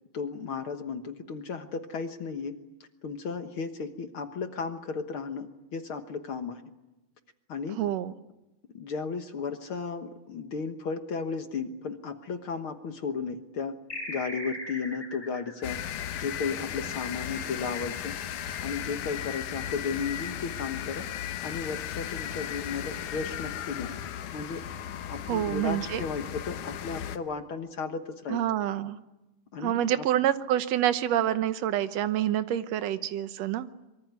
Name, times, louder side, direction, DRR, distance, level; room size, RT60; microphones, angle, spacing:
voice 1, 0.1-2.6 3.0-6.6 7.5-7.8 8.7-13.8 14.1-18.2 18.6-21.1 21.4-24.0 24.3-24.6 24.9-28.4 29.5-30.1, left 5 dB, 55° left, 7 dB, 1.7 m, -34 dB
voice 2, 7.8-8.1 25.3-26.0 28.3-29.0 29.6-33.7, right 11 dB, 65° right, 12 dB, 2.1 m, -27 dB
sound 1, 13.9-16.9, equal, 5° left, 6.1 m, -40 dB
sound 2, 15.6-27.2, left 10 dB, 85° left, 2.6 m, -36 dB
24.5 x 23.5 x 9.5 m, 0.99 s
omnidirectional pair, 3.5 m